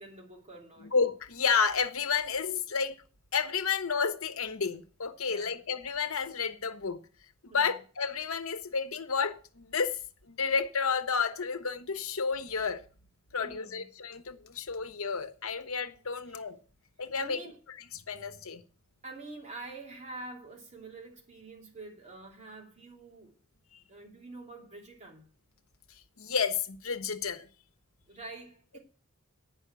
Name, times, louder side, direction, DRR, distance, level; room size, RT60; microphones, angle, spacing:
voice 1, 0.0-0.9 5.3-5.6 7.5-7.8 13.4-13.9 16.3-16.4 17.1-17.6 19.0-23.3 23.9-25.3 28.1-28.8, right 2 dB, 35° right, 2.9 m, -46 dB
voice 2, 0.9-3.0 3.3-7.0 7.4-10.0 10.3-12.8 13.3-16.6 17.0-17.4 17.9-18.6 23.7-23.8 26.2-27.5, left 5 dB, 75° left, 1.0 m, -31 dB
8.9 x 5.7 x 8.1 m
head